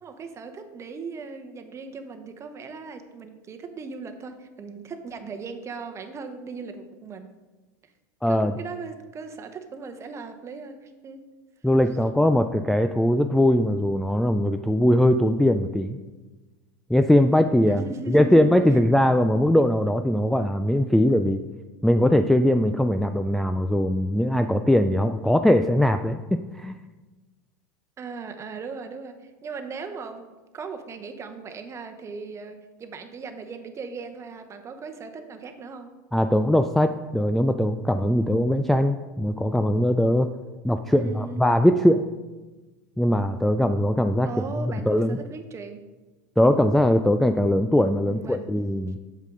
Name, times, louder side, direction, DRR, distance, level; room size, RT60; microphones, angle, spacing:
voice 1, 0.0-7.3 8.3-11.2 17.7-18.6 28.0-35.9 40.9-41.5 44.2-45.8 48.0-48.5, right 4 dB, 30° right, 7 dB, 0.9 m, -38 dB
voice 2, 8.2-8.5 11.6-16.0 16.9-21.4 21.8-26.8 36.1-40.3 40.6-42.0 43.0-44.3 44.6-45.2 46.4-49.0, left 1 dB, ahead, 6 dB, 0.3 m, -21 dB
8.1 x 6.7 x 3.8 m, 1.2 s
hypercardioid pair, 95°, 10 cm